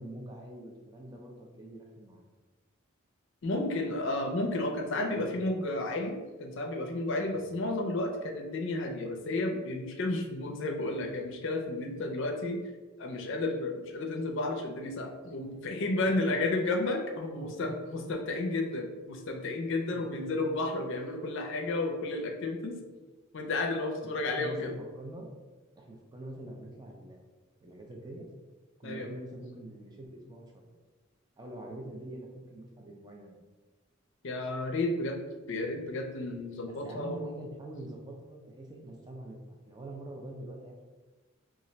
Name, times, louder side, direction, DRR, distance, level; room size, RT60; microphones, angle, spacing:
voice 1, 0.0-2.2 5.0-5.3 7.2-7.4 15.4-15.6 17.4-17.7 19.9-20.3 24.1-25.3 25.8-27.2 27.6-28.3 28.8-30.7 31.4-33.4 36.8-40.8, right 1 dB, 20° right, 0 dB, 0.4 m, -45 dB
voice 2, 3.4-12.6 13.0-22.8 23.3-24.7 28.8-29.1 34.2-35.2 35.5-37.2, left 2 dB, 60° left, 3 dB, 0.4 m, -32 dB
2.4 x 2.1 x 3.9 m, 1.3 s
head